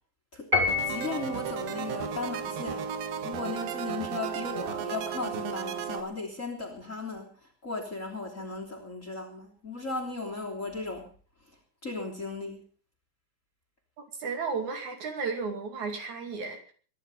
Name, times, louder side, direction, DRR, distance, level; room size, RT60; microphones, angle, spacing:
voice 1, 0.3-7.3 7.6-11.1 11.8-12.6, left 3 dB, 20° left, 3 dB, 3.2 m, -36 dB
Piano, 0.5-1.4, left 4 dB, 20° right, 4.7 m, -27 dB
sound 1, 0.7-6.0, right 8 dB, 90° right, 3.3 m, -34 dB
voice 2, 14.2-16.7, right 4 dB, 55° right, 4 dB, 3.9 m, -33 dB
22.0 x 11.0 x 5.5 m, 0.42 s
omnidirectional pair, 4.1 m